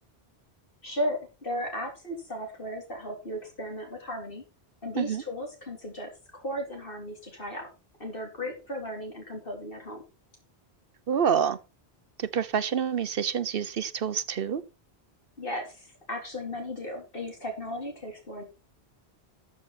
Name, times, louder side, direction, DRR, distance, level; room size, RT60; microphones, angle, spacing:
voice 1, 0.8-4.4 4.8-7.7 8.0-10.0 15.4-18.4, equal, 60° left, 4.0 m, -35 dB
voice 2, 11.1-11.6 12.2-14.6, right 7 dB, 65° right, 1.0 m, -27 dB
13.5 x 7.3 x 4.3 m
omnidirectional pair, 1.1 m